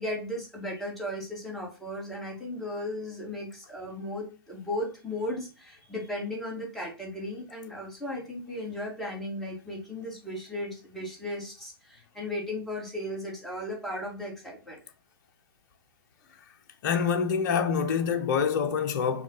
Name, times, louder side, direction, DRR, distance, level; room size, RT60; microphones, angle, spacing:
voice 1, 0.0-14.8, left 1 dB, ahead, 2.6 m, -36 dB
voice 2, 16.8-19.2, left 6 dB, 45° left, 1.1 m, -26 dB
6.3 x 3.4 x 5.7 m
hypercardioid pair, 125°, 13 cm